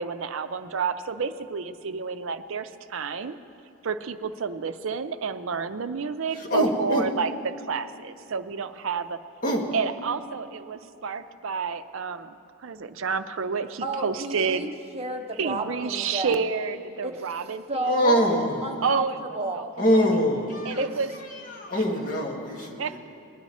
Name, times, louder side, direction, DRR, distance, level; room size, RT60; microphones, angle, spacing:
voice 1, 0.0-3.4 3.8-9.2 9.7-12.3 12.6-14.7 15.4-18.1 18.8-19.2 19.5-19.7 20.6-21.1 22.8-23.0, right 5 dB, 60° right, 9 dB, 0.5 m, -29 dB
voice 2, 6.3-7.1 9.4-9.7 17.8-18.7 19.8-20.8 21.3-23.0, equal, 35° left, 0 dB, 1.5 m, -24 dB
voice 3, 13.8-16.4 17.0-19.7 20.8-20.9, right 2 dB, 25° right, 4 dB, 0.7 m, -32 dB
20.0 x 9.5 x 4.2 m, 2.7 s
head